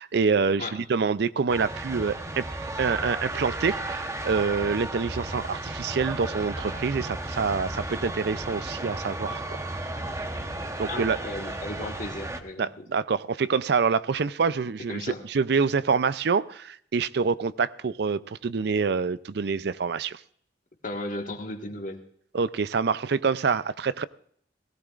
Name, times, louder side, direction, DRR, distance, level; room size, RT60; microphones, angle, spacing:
voice 1, 0.0-9.6 10.8-11.2 12.6-20.2 22.3-24.0, right 5 dB, 65° right, 16 dB, 0.5 m, -26 dB
sound 1, 1.5-12.4, right 1 dB, 15° right, 1.0 m, -34 dB
voice 2, 10.9-12.8 14.9-15.2 20.8-22.0, left 2 dB, 50° left, 4 dB, 1.7 m, -35 dB
18.0 x 16.5 x 2.5 m, 0.62 s
head